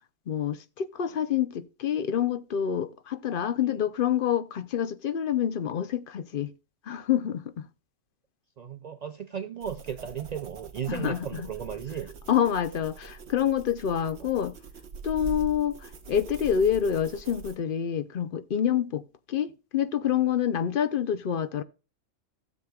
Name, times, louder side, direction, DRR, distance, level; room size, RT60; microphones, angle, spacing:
voice 1, 0.3-6.5 6.9-7.7 10.9-11.5 12.3-14.6 15.0-21.6, left 9 dB, 55° left, 0.7 m, -27 dB
voice 2, 8.6-12.1 14.2-14.3, right 8 dB, 85° right, 0.3 m, -35 dB
sound 1, 9.6-17.6, right 4 dB, 55° right, 1.3 m, -43 dB
16.0 x 7.3 x 2.3 m
omnidirectional pair, 1.4 m